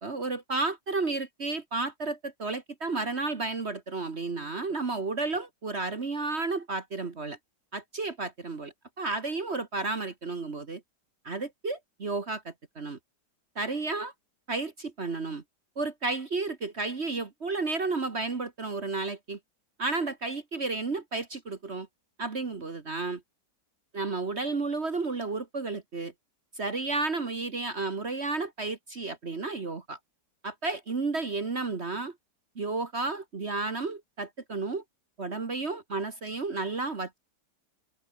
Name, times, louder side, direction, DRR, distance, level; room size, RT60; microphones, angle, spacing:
voice 1, 0.0-7.4 7.7-10.8 11.2-13.0 13.6-14.1 14.5-15.4 15.8-19.4 19.8-21.9 22.2-23.2 23.9-26.1 26.6-30.0 30.4-32.2 32.6-34.8 35.2-37.2, right 3 dB, 40° right, 1.8 m, -32 dB
omnidirectional pair, 1.9 m